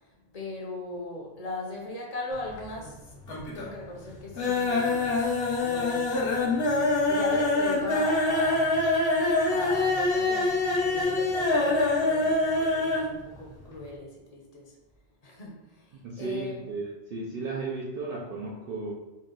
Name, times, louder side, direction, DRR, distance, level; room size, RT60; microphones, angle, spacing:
voice 1, 0.3-3.1 3.5-5.3 5.6-8.7 9.5-14.7 15.2-16.7, left 2 dB, 40° left, -1 dB, 0.8 m, -39 dB
sound 1, 2.3-2.9 3.2-3.8 4.1-13.1 13.4-13.5 13.8-13.9, left 2 dB, 60° left, 1.1 m, -25 dB
voice 2, 16.0-18.9, right 3 dB, 60° right, -3 dB, 0.7 m, -34 dB
4.1 x 2.3 x 3.8 m, 1.1 s
omnidirectional pair, 1.2 m